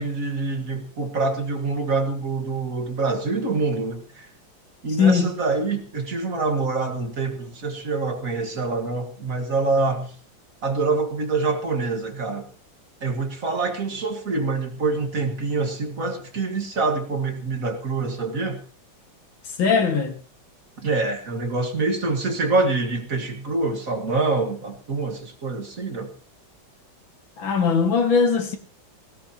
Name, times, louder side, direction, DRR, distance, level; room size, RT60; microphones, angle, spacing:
voice 1, 0.0-4.3 4.8-10.1 10.6-12.5 13.0-18.6 20.8-26.1, right 3 dB, 45° right, 2.1 m, -25 dB
voice 2, 5.0-5.3 19.6-20.2 27.4-28.6, left 5 dB, 85° left, 2.7 m, -20 dB
18.5 x 17.5 x 2.9 m
omnidirectional pair, 2.1 m